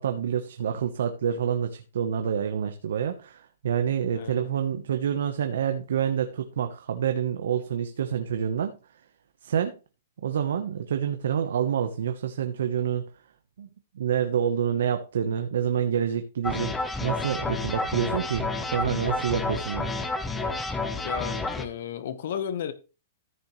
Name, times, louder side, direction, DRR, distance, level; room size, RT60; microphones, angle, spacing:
voice 1, 0.0-8.8 9.4-9.8 10.2-13.1 13.6-13.7 13.9-19.9, right 8 dB, 75° right, 1.1 m, -27 dB
voice 2, 4.1-4.5 21.0-22.7, left 8 dB, 55° left, 1.2 m, -33 dB
sound 1, 16.4-21.7, left 3 dB, 10° left, 0.8 m, -30 dB
14.0 x 7.0 x 3.2 m
hypercardioid pair, 165°, 0 cm